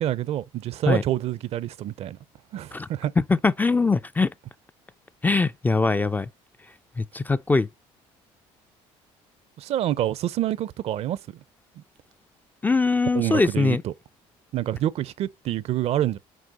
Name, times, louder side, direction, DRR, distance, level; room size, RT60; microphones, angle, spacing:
voice 1, 0.0-2.2 2.5-3.1 9.6-11.2 11.8-11.9 13.1-13.9 14.5-16.2, right 12 dB, 55° right, 0.5 m, -27 dB
voice 2, 3.2-4.3 5.2-6.3 7.0-7.7 12.6-13.8, left 3 dB, 15° left, 0.3 m, -22 dB
6.3 x 4.4 x 4.0 m
supercardioid pair, 90°, 12 cm